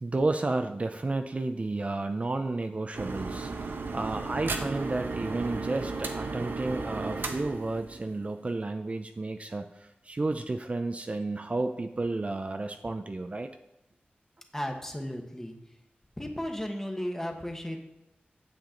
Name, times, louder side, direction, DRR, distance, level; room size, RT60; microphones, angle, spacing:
voice 1, 0.0-13.5, right 2 dB, 40° right, 7 dB, 0.5 m, -32 dB
sound 1, 2.9-8.4, right 3 dB, 75° right, 0.8 m, -35 dB
voice 2, 14.5-15.6 16.2-17.8, equal, 10° left, 3 dB, 1.2 m, -34 dB
8.8 x 7.5 x 3.9 m, 0.87 s
wide cardioid pair, 90°, 4 cm